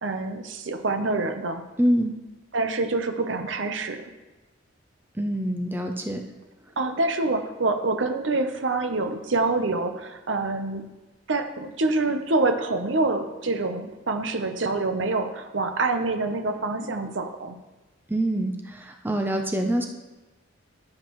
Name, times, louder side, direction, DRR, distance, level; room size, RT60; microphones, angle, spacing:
voice 1, 0.0-1.6 2.5-4.1 6.8-10.9 11.3-17.6, right 3 dB, 65° right, 7 dB, 0.8 m, -26 dB
voice 2, 1.8-2.1 5.2-6.2 18.1-19.9, right 1 dB, 10° right, 3 dB, 0.6 m, -25 dB
14.5 x 7.5 x 3.1 m, 1.1 s
head